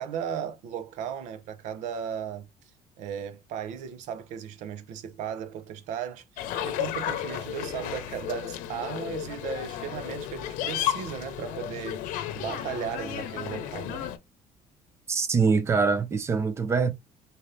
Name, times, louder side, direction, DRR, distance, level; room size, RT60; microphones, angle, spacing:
voice 1, 0.0-2.7 3.0-14.1, right 8 dB, 65° right, 0.7 m, -36 dB
sound 1, 6.4-14.2, left 11 dB, 85° left, 0.8 m, -33 dB
voice 2, 15.1-16.9, right 5 dB, 20° right, 0.5 m, -24 dB
4.2 x 2.7 x 3.2 m
cardioid pair, 175°, 13 cm